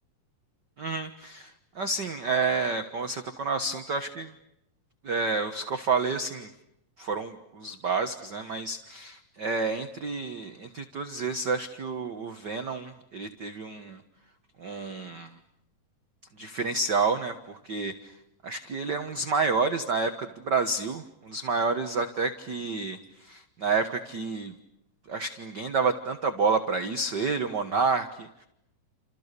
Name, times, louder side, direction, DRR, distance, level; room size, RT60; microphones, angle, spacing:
voice 1, 0.8-4.3 5.0-6.5 7.0-14.0 14.6-15.3 16.4-17.9 18.4-24.5 25.1-28.5, right 4 dB, 45° right, 8 dB, 1.5 m, -29 dB
30.0 x 28.0 x 6.8 m, 0.81 s
omnidirectional pair, 3.7 m